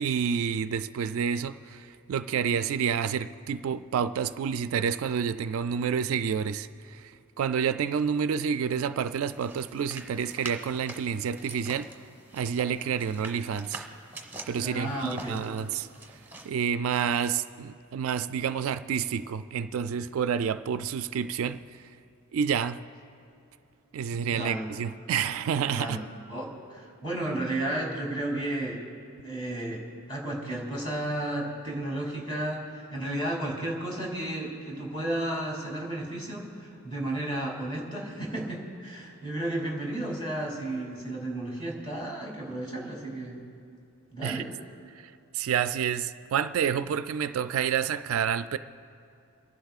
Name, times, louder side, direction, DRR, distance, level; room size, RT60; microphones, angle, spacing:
voice 1, 0.0-7.1 7.4-11.9 12.3-13.8 14.5-15.9 16.4-21.6 22.3-22.8 23.9-26.0 44.2-44.4 45.3-48.6, right 7 dB, 65° right, 11 dB, 0.3 m, -29 dB
sound 1, 9.3-16.5, right 2 dB, 10° right, 1.2 m, -44 dB
voice 2, 14.6-15.4 24.3-24.7 25.7-26.0 26.3-28.8 29.2-29.8 30.1-43.4 44.1-44.5, right 1 dB, 20° left, -2 dB, 2.6 m, -33 dB
30.0 x 11.5 x 2.4 m, 2.5 s
head